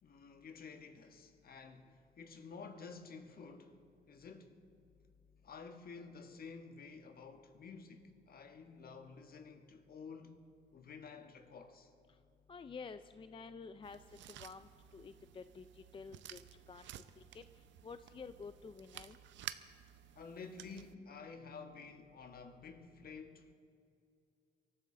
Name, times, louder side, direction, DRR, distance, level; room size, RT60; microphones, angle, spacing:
voice 1, 0.0-3.8 4.1-4.6 5.4-10.5 10.7-11.9 20.2-23.5, left 5 dB, 55° left, 1.3 m, -51 dB
voice 2, 12.5-14.0 14.2-15.7 15.9-16.4 16.7-16.9 17.3-17.4 17.8-19.2, left 5 dB, 30° left, 0.4 m, -50 dB
sound 1, 13.8-20.9, right 12 dB, 80° right, 0.5 m, -53 dB
23.5 x 13.5 x 3.8 m
cardioid pair, 85°, 19 cm